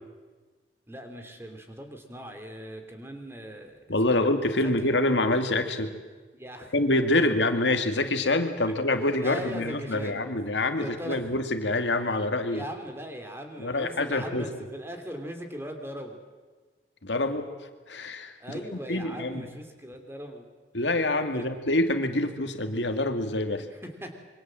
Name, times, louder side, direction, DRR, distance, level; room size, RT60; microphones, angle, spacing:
voice 1, 0.9-3.9 4.1-4.3 4.6-4.9 6.3-6.7 7.2-7.3 8.7-8.8 9.2-10.2 10.8-11.3 12.5-16.2 17.1-17.2 18.4-20.4 21.3-21.5 23.7-24.2, equal, 15° right, 5 dB, 2.9 m, -39 dB
voice 2, 3.9-5.9 6.7-12.7 13.6-14.5 17.0-17.5 17.9-18.3 18.9-19.5 20.7-23.6, left 2 dB, 80° left, 6 dB, 2.2 m, -26 dB
26.5 x 23.5 x 7.6 m, 1.4 s
head